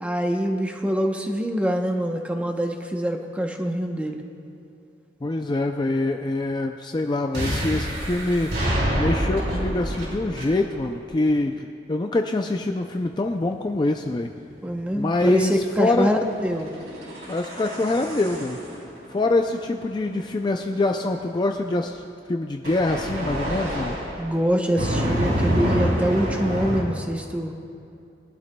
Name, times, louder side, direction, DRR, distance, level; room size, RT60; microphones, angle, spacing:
voice 1, 0.0-4.2 14.6-16.7 24.2-27.6, equal, 5° right, 3 dB, 0.8 m, -24 dB
voice 2, 5.2-8.5 9.0-14.3 14.9-16.1 17.3-18.6 19.1-22.0 22.3-24.0, left 2 dB, 25° left, 4 dB, 0.4 m, -24 dB
sound 1, 7.3-11.0 12.8-21.3 22.6-24.3 24.8-26.8, equal, 65° right, 3.3 m, -27 dB
22.0 x 12.0 x 2.2 m, 2.6 s
head